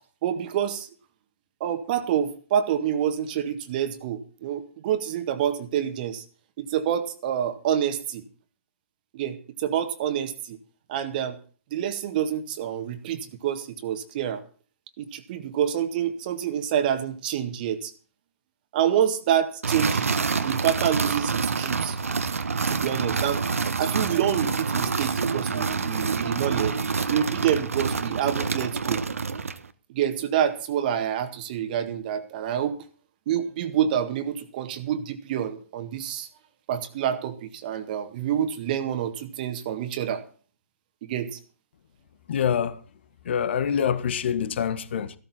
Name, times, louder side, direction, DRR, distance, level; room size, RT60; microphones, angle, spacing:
voice 1, 0.2-0.9 1.6-6.2 6.6-8.2 9.1-10.6 10.9-11.4 11.7-14.4 15.0-17.9 18.7-22.0 22.7-23.4 23.8-26.8 27.1-29.0 29.9-32.8 33.3-36.3 36.7-40.2 41.0-41.4, right 9 dB, 35° right, 1.8 m, -27 dB
sound 1, 19.6-29.7, right 5 dB, 65° right, 1.3 m, -27 dB
voice 2, 42.3-42.8 43.2-45.1, left 8 dB, 45° left, 1.5 m, -25 dB
16.0 x 13.5 x 4.3 m
figure-of-eight pair, 130°, 8 cm